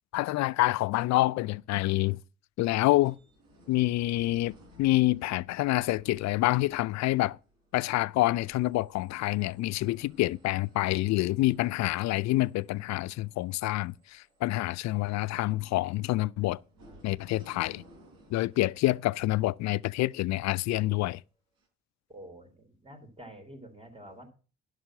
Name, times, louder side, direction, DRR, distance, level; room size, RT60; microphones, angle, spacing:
voice 1, 0.1-2.2 2.6-3.2 3.7-7.4 7.7-16.6 17.0-17.8 18.3-21.2, left 17 dB, 50° left, 0.5 m, -27 dB
sound 1, 2.8-21.0 21.6-21.7, equal, 70° right, 4.7 m, -59 dB
voice 2, 22.1-24.3, right 1 dB, 15° right, 4.0 m, -48 dB
11.0 x 6.1 x 6.5 m
hypercardioid pair, 45°, 35 cm